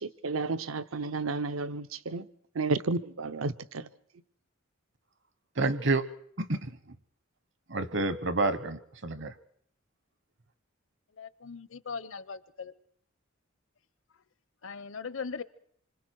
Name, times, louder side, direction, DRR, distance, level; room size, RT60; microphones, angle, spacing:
voice 1, 0.0-2.3 2.6-3.9, right 3 dB, 80° right, 0.8 m, -32 dB
voice 2, 5.6-6.1 6.4-6.7 7.7-9.3, right 2 dB, 60° right, 1.1 m, -29 dB
voice 3, 11.2-12.7 14.6-15.4, left 5 dB, 65° left, 0.8 m, -39 dB
27.0 x 25.0 x 4.7 m
head